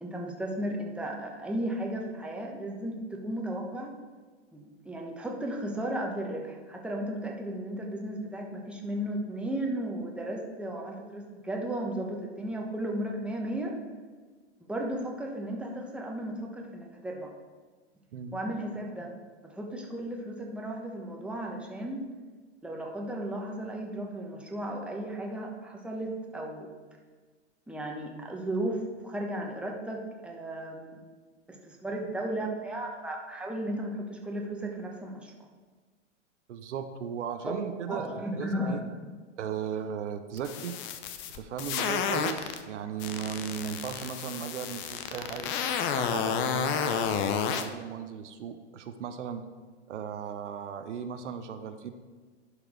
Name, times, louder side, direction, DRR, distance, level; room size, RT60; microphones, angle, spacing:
voice 1, 0.0-3.9 4.5-13.7 14.7-17.3 18.3-19.1 19.4-22.0 22.6-26.7 27.7-31.0 31.5-35.3 37.4-37.5 37.9-39.1, right 1 dB, 5° right, -1 dB, 1.2 m, -35 dB
voice 2, 18.1-18.6 36.5-38.1 38.4-38.8 39.4-40.8 41.3-45.5 45.9-49.5 49.9-51.9, right 7 dB, 75° right, 8 dB, 0.8 m, -37 dB
sound 1, 40.4-42.6 43.0-47.6, left 8 dB, 35° left, 0.7 m, -30 dB
11.0 x 4.8 x 5.0 m, 1.4 s
hypercardioid pair, 120°, 35 cm